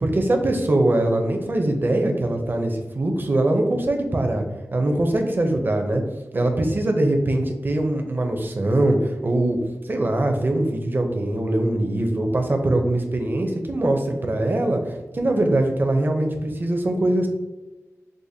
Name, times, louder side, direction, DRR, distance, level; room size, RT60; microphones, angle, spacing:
voice 1, 0.0-4.4 4.7-6.0 6.3-9.6 9.8-17.3, right 1 dB, 40° right, 4 dB, 0.5 m, -22 dB
4.8 x 2.1 x 2.6 m, 1.2 s
wide cardioid pair, 65°, 5 cm